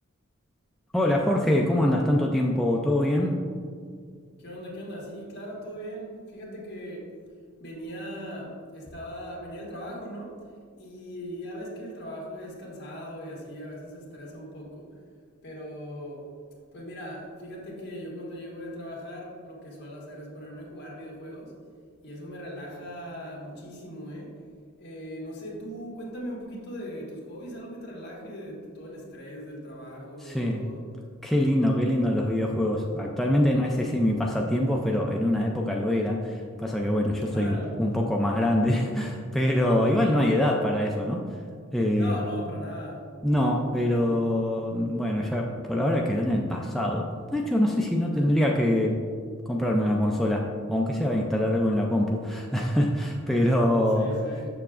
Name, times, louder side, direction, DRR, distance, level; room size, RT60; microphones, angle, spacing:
voice 1, 0.9-3.4 30.2-30.6 31.2-41.3 41.7-42.2 43.2-49.0 49.5-54.2, left 1 dB, ahead, -1 dB, 0.3 m, -24 dB
voice 2, 4.4-7.1 7.6-10.4 10.8-14.8 15.4-16.3 16.7-21.5 22.0-24.4 24.8-30.8 33.9-34.2 37.3-37.7 42.0-43.1 48.1-48.4 53.9-54.5, equal, 55° left, -3 dB, 1.5 m, -39 dB
6.7 x 6.6 x 2.4 m, 2.1 s
head